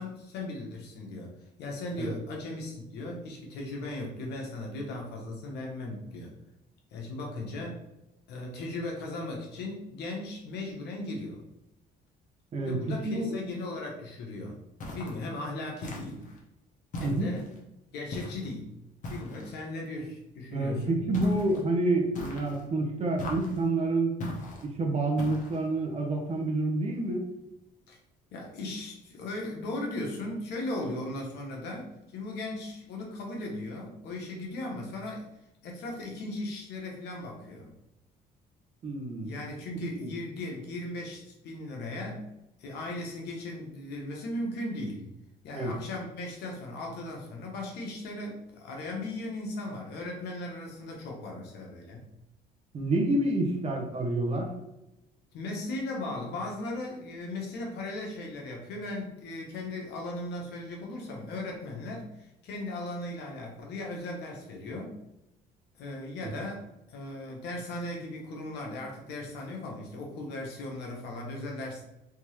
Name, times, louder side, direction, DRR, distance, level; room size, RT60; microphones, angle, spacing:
voice 1, 0.0-1.3 1.6-6.3 6.9-7.8 8.3-11.4 12.6-14.6 14.9-16.3 17.0-17.5 17.9-18.7 19.1-21.0 27.9-28.0 28.3-35.3 35.6-37.7 39.2-42.3 42.6-45.1 45.4-52.1 55.3-65.0 65.8-71.8, left 2 dB, 75° left, 0 dB, 1.0 m, -37 dB
voice 2, 12.5-13.4 17.0-17.3 20.5-24.1 24.6-27.3 38.8-39.4 39.8-40.1 45.5-45.7 52.7-54.5 66.2-66.3, right 2 dB, 40° right, 1 dB, 0.9 m, -28 dB
sound 1, 14.8-15.3 15.8-16.4 16.9-17.6 18.1-18.5 19.0-19.6 21.1-21.6 22.1-22.7 23.2-23.7 24.2-24.7 25.2-25.7, left 1 dB, 50° left, 0.9 m, -39 dB
3.5 x 2.7 x 3.1 m, 0.90 s
cardioid pair, 110°, 17 cm